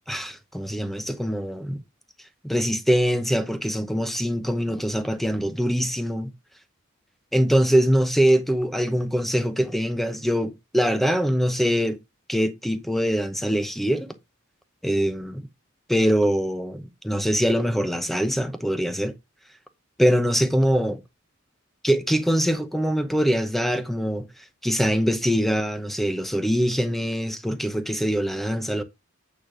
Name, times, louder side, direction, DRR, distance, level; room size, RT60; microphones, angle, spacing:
voice 1, 0.1-1.8 2.4-6.3 7.3-12.0 12.3-14.1 14.8-15.5 15.9-19.1 20.0-21.0 21.8-24.3 24.6-28.8, equal, ahead, 0.7 m, -23 dB
8.8 x 3.3 x 6.1 m
head